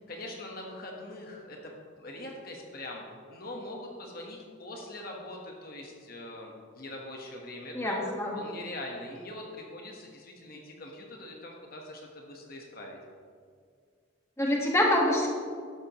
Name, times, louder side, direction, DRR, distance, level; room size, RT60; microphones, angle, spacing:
voice 1, 0.0-1.7 2.0-3.0 3.3-8.0 8.3-13.0, left 1 dB, 50° left, 0 dB, 1.4 m, -42 dB
voice 2, 7.7-8.4 14.4-15.3, left 1 dB, 15° left, -2 dB, 1.6 m, -25 dB
12.5 x 12.0 x 3.1 m, 2.1 s
head